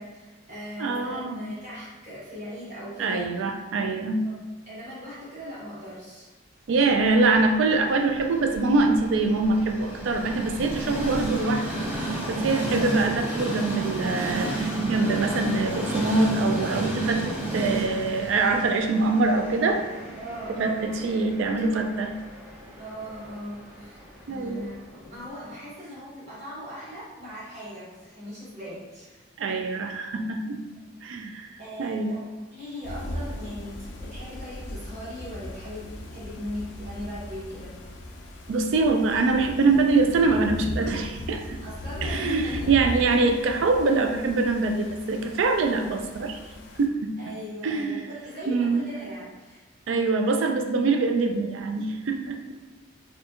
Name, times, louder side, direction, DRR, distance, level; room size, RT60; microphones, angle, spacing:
voice 1, 0.0-3.3 4.2-6.3 20.2-21.0 22.8-24.0 24.3-29.2 31.6-32.2 32.5-37.8 41.6-42.7 47.2-49.6, equal, 35° right, -8 dB, 1.0 m, -39 dB
voice 2, 0.8-1.5 3.0-4.3 6.7-19.8 20.5-22.2 24.3-24.7 29.4-30.6 31.0-31.5 31.8-32.2 38.5-41.6 42.0-46.4 46.8-47.4 47.6-48.1 48.5-48.8 49.9-52.5, right 3 dB, 70° right, 5 dB, 0.3 m, -24 dB
Train, 7.0-25.1, right 2 dB, 10° right, 0.5 m, -33 dB
sound 1, 32.8-46.9, left 1 dB, 65° left, 0.3 m, -38 dB
2.7 x 2.3 x 2.4 m, 1.3 s
head